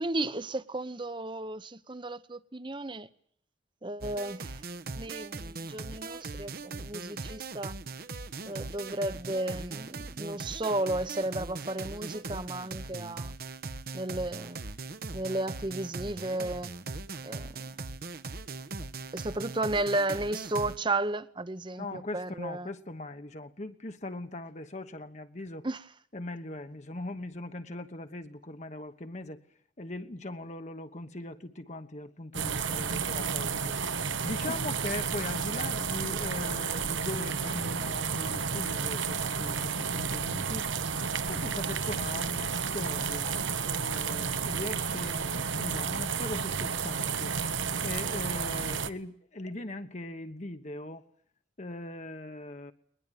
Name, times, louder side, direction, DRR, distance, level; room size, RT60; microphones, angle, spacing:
voice 1, 0.0-3.1 3.8-4.6 5.0-7.8 8.5-13.3 13.9-14.6 15.1-16.7 17.2-17.6 19.1-22.7 25.6-25.8 34.5-34.6, right 2 dB, 25° right, 1.0 m, -33 dB
sound 1, 4.0-20.8, right 3 dB, 50° right, 1.1 m, -40 dB
voice 2, 21.7-25.7 26.1-29.4 29.8-40.7 41.3-47.4 47.8-51.0 51.6-52.7, left 2 dB, 40° left, 1.2 m, -40 dB
sound 2, 32.3-48.9, right 6 dB, 85° right, 1.3 m, -31 dB
21.5 x 21.0 x 9.2 m
head